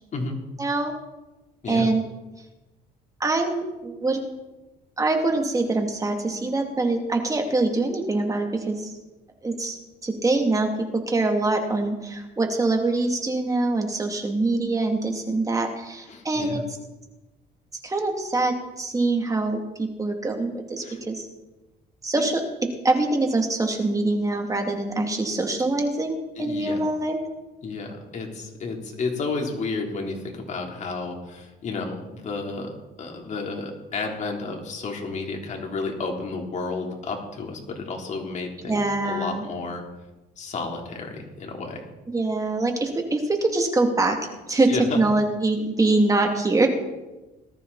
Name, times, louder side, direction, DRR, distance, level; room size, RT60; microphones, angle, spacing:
voice 1, 0.6-0.9 1.7-2.0 3.2-4.2 5.0-9.0 9.4-9.8 10.0-10.7 11.1-16.6 17.8-21.3 22.0-22.4 22.8-27.2 38.7-39.4 42.1-46.7, right 2 dB, 20° right, 3 dB, 2.8 m, -24 dB
voice 2, 16.1-16.6 20.8-21.0 22.2-22.3 26.4-26.8 27.6-32.7 33.0-39.8 40.4-41.8 44.7-45.0, left 3 dB, 45° left, 1 dB, 3.6 m, -31 dB
19.5 x 13.5 x 4.2 m, 1.1 s
cardioid pair, 110°, 17 cm